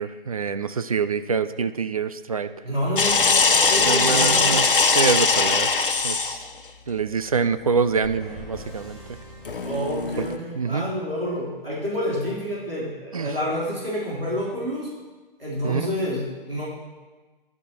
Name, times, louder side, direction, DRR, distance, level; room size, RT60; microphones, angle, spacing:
voice 1, 0.0-2.5 3.8-4.7 4.9-6.4 6.9-9.0 10.2-10.3 10.5-10.8 13.1-13.3 15.6-15.8, right 5 dB, 40° right, 12 dB, 0.4 m, -25 dB
voice 2, 2.6-3.2 3.5-4.7 9.6-14.9 15.4-16.6, equal, 85° right, -7 dB, 3.4 m, -28 dB
sound 1, 3.0-6.5 9.4-10.4, left 4 dB, 65° left, 0.8 m, -20 dB
sound 2, 8.0-10.8, equal, ahead, 2.5 m, -43 dB
13.0 x 11.0 x 2.9 m, 1.3 s
figure-of-eight pair, 135°, 29 cm